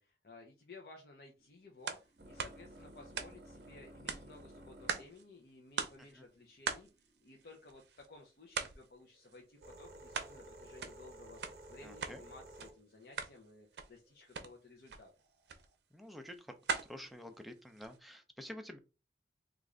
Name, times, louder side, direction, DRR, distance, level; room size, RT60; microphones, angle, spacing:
voice 1, 0.0-15.1, left 3 dB, 60° left, 1 dB, 0.6 m, -56 dB
sound 1, 1.4-7.7 8.5-14.3 15.2-15.7, right 1 dB, 60° right, 0.9 m, -56 dB
sound 2, 1.8-2.0 2.4-3.6 4.1-5.2 5.5-5.6 5.8-6.1 6.6-8.1 8.5-8.9 9.2-10.4 10.6-12.2 12.5-12.7 13.0-13.4 13.7-14.0 14.3-14.5 14.8-15.0 15.5-15.7 16.1-18.0, right 5 dB, 75° right, 0.6 m, -41 dB
voice 2, 11.8-12.2 15.9-16.5 16.9-18.8, left 1 dB, ahead, 5 dB, 0.4 m, -49 dB
3.1 x 2.4 x 3.7 m, 0.30 s
head